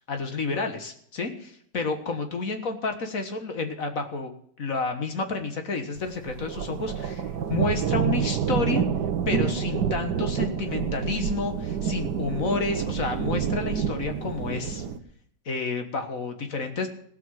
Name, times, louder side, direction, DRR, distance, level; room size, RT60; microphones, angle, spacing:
voice 1, 0.1-4.3 4.6-8.8 9.3-14.9 15.5-16.9, left 3 dB, 50° left, 7 dB, 1.8 m, -30 dB
sound 1, 6.0-15.0, right 7 dB, 70° right, 1.6 m, -28 dB
17.0 x 5.9 x 9.1 m, 0.64 s
omnidirectional pair, 1.9 m